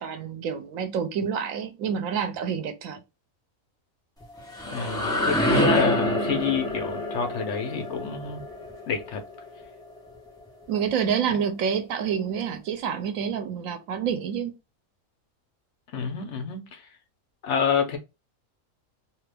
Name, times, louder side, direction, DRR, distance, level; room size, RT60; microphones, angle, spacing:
voice 1, 0.0-3.0 10.7-14.5, right 7 dB, 80° right, 1.0 m, -28 dB
sound 1, 4.2-10.0, left 1 dB, 5° left, 0.8 m, -27 dB
voice 2, 4.7-8.5 8.9-9.2 11.3-11.4 15.9-16.8 17.4-18.0, left 6 dB, 65° left, 1.0 m, -28 dB
2.7 x 2.5 x 3.3 m
omnidirectional pair, 1.4 m